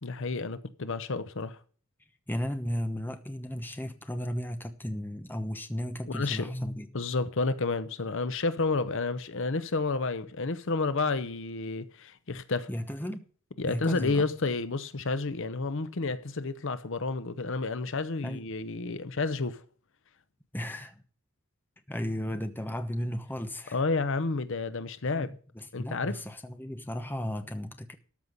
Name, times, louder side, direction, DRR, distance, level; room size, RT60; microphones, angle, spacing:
voice 1, 0.0-1.6 6.1-6.5 6.9-12.7 13.6-19.6 23.7-25.3 25.7-26.2, left 3 dB, 60° left, 0.8 m, -30 dB
voice 2, 2.3-6.9 12.7-13.3 13.7-14.3 18.2-18.4 20.5-21.0 21.9-23.8 25.1-28.0, equal, 10° left, 1.0 m, -35 dB
13.5 x 5.6 x 8.0 m
head